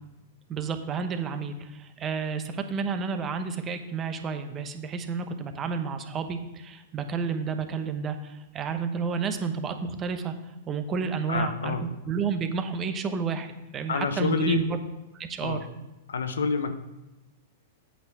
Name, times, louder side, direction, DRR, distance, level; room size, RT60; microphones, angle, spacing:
voice 1, 0.5-10.3 10.7-14.8 15.1-15.6, right 5 dB, 25° right, 8 dB, 1.0 m, -31 dB
voice 2, 11.3-11.9 13.9-14.6 15.4-15.6 16.1-16.7, left 4 dB, 85° left, 9 dB, 0.9 m, -27 dB
8.6 x 5.8 x 6.0 m, 1.0 s
hypercardioid pair, 115°, 0 cm